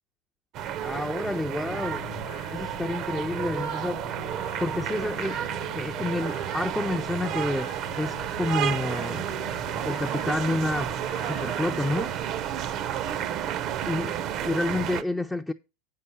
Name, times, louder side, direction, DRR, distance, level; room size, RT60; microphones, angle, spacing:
sound 1, 0.5-15.0, right 10 dB, 45° right, 0.6 m, -31 dB
voice 1, 0.8-2.1 2.5-4.1 4.6-5.4 5.8-9.3 9.9-10.9 11.2-12.1 13.9-15.5, left 2 dB, 5° left, 0.4 m, -29 dB
sound 2, 1.6-12.2, left 13 dB, 65° left, 0.9 m, -44 dB
sound 3, 5.6-6.8 7.6-8.8 9.6-10.8 11.6-12.8, right 7 dB, 90° right, 1.3 m, -52 dB
8.1 x 5.6 x 5.5 m
hypercardioid pair, 105°, 0 cm